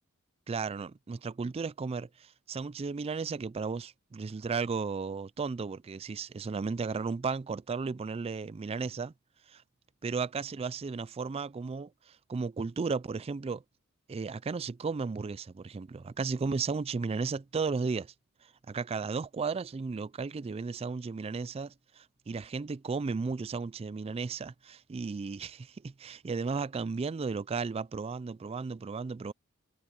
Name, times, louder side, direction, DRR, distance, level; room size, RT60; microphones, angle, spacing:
voice 1, 0.5-9.1 9.5-9.6 10.0-13.6 14.1-18.1 18.4-29.3, right 4 dB, 30° right, 0.3 m, -34 dB
head